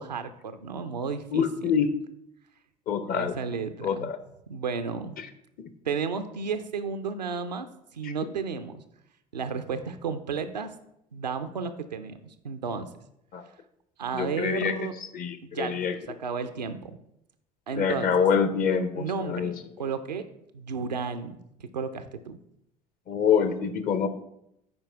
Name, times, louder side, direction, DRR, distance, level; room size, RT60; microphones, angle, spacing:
voice 1, 0.0-1.7 3.0-4.1 4.5-5.2 5.9-7.7 7.9-8.8 9.3-10.7 11.1-12.2 12.4-12.9 14.0-14.9 15.4-17.0 17.7-18.1 19.0-20.3 20.5-22.4, right 5 dB, 90° right, 9 dB, 0.5 m, -33 dB
voice 2, 1.3-2.0 2.9-3.4 3.8-4.2 5.2-5.3 8.0-8.1 13.3-13.5 14.1-14.9 15.1-15.9 17.7-19.5 23.1-24.1, left 6 dB, 45° left, 11 dB, 0.7 m, -26 dB
9.5 x 4.3 x 3.4 m, 0.79 s
figure-of-eight pair, 60°, 21 cm